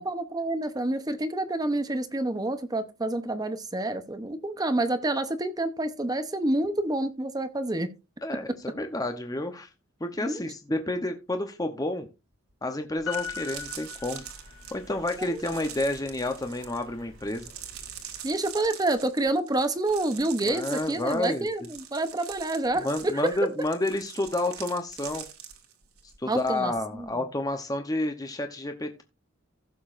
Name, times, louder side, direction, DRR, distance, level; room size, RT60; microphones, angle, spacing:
voice 1, 0.0-7.9 10.2-10.4 15.3-15.4 18.2-22.9 23.1-23.4 26.3-27.1, right 2 dB, 20° right, 10 dB, 0.8 m, -28 dB
voice 2, 8.2-9.7 10.0-12.1 12.6-14.2 14.7-17.5 20.5-21.5 22.8-25.2 26.2-29.0, left 1 dB, 15° left, 6 dB, 0.8 m, -30 dB
sound 1, 12.5-12.6 13.0-26.5 26.8-27.1, right 9 dB, 85° right, 2.0 m, -44 dB
Piano, 13.1-14.8 15.2-15.3, left 9 dB, 60° left, 0.9 m, -38 dB
sound 2, 13.2-18.2, equal, 60° right, 2.9 m, -52 dB
15.5 x 6.8 x 2.5 m, 0.28 s
head